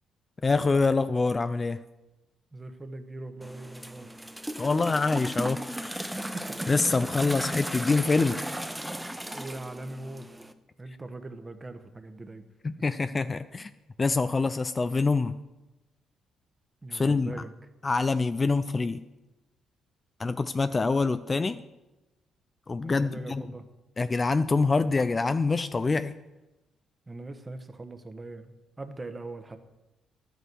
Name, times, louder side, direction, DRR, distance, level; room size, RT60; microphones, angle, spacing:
voice 1, 0.4-1.8 4.6-6.2 6.7-8.4 12.6-13.7 14.0-15.4 16.9-17.3 17.8-19.0 20.2-21.6 22.7-23.4 24.0-26.1, left 3 dB, 30° left, 11 dB, 0.4 m, -25 dB
voice 2, 2.5-4.2 6.2-6.7 9.2-10.3 10.8-12.5 16.8-17.5 22.8-23.7 27.1-29.6, right 2 dB, 20° right, 8 dB, 1.2 m, -41 dB
sound 1, 3.4-10.5, right 1 dB, 5° right, 0.7 m, -36 dB
11.5 x 8.2 x 6.2 m, 1.0 s
cardioid pair, 90°, 0 cm